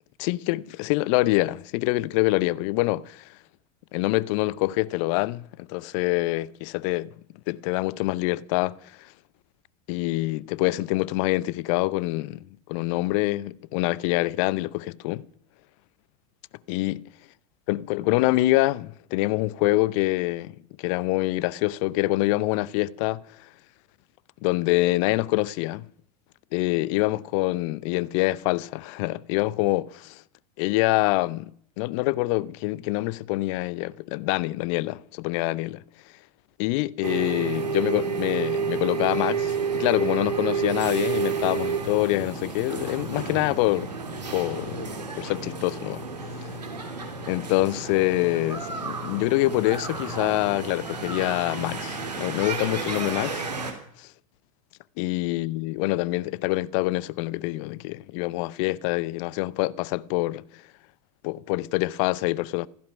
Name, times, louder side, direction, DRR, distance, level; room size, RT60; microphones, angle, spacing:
voice 1, 0.2-3.3 3.9-7.1 7.5-9.1 9.9-15.2 16.7-17.1 17.7-23.2 24.4-25.9 26.5-30.2 30.6-31.5 31.8-35.8 36.6-43.9 44.3-46.1 46.4-46.5 47.3-53.5 54.0-54.1 55.0-60.4 61.2-62.7, left 19 dB, 50° left, 0.7 m, -25 dB
sound 1, 37.0-53.7, right 5 dB, 85° right, 3.0 m, -31 dB
16.0 x 15.0 x 5.9 m
figure-of-eight pair, 85°, 20 cm